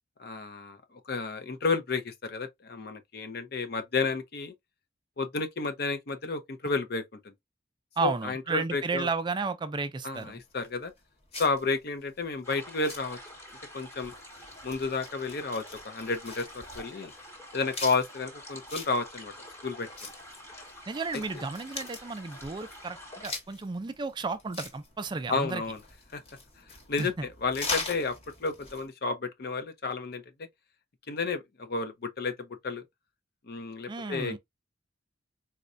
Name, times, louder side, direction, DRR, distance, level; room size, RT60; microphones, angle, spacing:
voice 1, 0.2-4.5 5.2-7.3 8.0-9.1 10.0-10.9 11.4-13.2 13.7-14.1 14.6-17.1 17.5-19.3 19.6-19.9 25.3-25.8 26.1-26.2 26.9-27.1 27.4-28.2 28.4-30.5 31.1-32.8 33.5-34.4, left 4 dB, 55° left, 0.6 m, -31 dB
voice 2, 8.0-10.4 20.9-23.0 23.2-25.6 27.0-27.2 33.9-34.4, right 4 dB, 25° right, 0.3 m, -33 dB
sound 1, 10.1-28.9, left 3 dB, 30° left, 1.2 m, -42 dB
sound 2, 12.4-23.3, equal, 15° left, 1.1 m, -47 dB
4.2 x 2.2 x 2.4 m
head